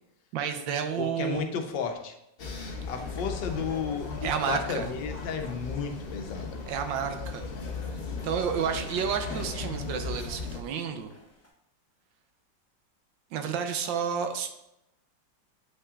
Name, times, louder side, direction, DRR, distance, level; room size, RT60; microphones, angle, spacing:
voice 1, 0.3-1.5 4.2-4.8 6.7-7.4 8.2-11.1 13.3-14.5, right 7 dB, 85° right, 7 dB, 1.4 m, -30 dB
voice 2, 1.0-2.1 2.9-6.6, left 6 dB, 75° left, 4 dB, 1.4 m, -33 dB
sound 1, 2.4-10.6, left 3 dB, 45° left, 0.8 m, -37 dB
sound 2, 6.3-11.5, equal, 10° left, 0.7 m, -49 dB
8.2 x 5.7 x 2.4 m, 0.84 s
omnidirectional pair, 2.0 m